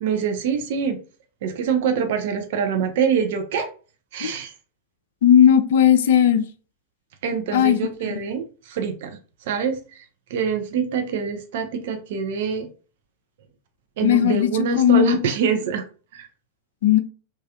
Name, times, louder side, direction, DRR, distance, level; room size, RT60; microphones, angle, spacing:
voice 1, 0.0-1.0 1.4-3.7 4.1-4.5 7.2-10.0 10.3-12.7 14.0-15.8 16.1-16.3, right 6 dB, 55° right, 0.4 m, -25 dB
voice 2, 5.2-6.5 7.5-7.8 14.0-14.5 14.8-15.2 16.8-17.0, left 9 dB, 55° left, 0.3 m, -16 dB
3.1 x 2.2 x 2.6 m
figure-of-eight pair, 90°, 0 cm